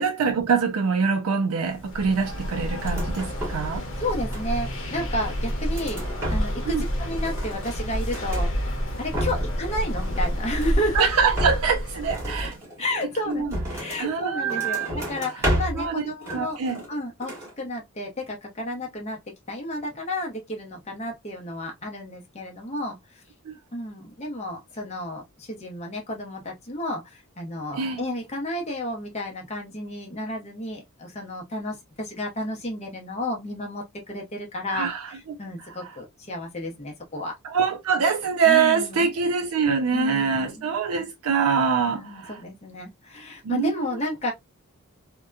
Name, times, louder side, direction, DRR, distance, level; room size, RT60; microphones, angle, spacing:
voice 1, 0.0-3.8 6.7-6.8 10.9-12.6 13.3-13.6 14.0-14.9 15.7-16.0 16.3-16.8 23.5-23.6 27.7-28.0 34.7-35.4 35.8-35.9 37.4-42.4 43.4-43.8, right 6 dB, 85° right, 0.4 m, -24 dB
sound 1, 1.7-12.5, equal, 60° left, 0.9 m, -29 dB
sound 2, 2.8-3.7 4.0-4.8 5.3-6.7 7.0-8.5 8.9-9.6 9.9-10.9 11.3-14.1 14.5-15.9 16.2-17.0 17.2-17.5, equal, 10° right, 1.1 m, -32 dB
voice 2, 4.0-11.1 12.8-16.6 16.9-19.2 19.5-23.2 23.7-37.4 38.5-39.1 39.9-40.7 41.9-44.3, left 1 dB, 30° left, 0.7 m, -32 dB
2.7 x 2.2 x 2.2 m
head